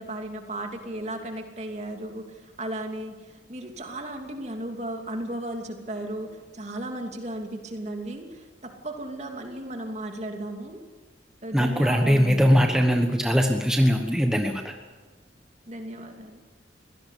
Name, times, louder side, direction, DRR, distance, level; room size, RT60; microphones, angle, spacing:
voice 1, 0.0-10.8 11.4-12.5 15.7-16.4, right 1 dB, 40° right, 3 dB, 2.8 m, -35 dB
voice 2, 11.5-14.7, equal, 5° right, 3 dB, 1.2 m, -21 dB
24.0 x 17.5 x 8.4 m, 1.4 s
head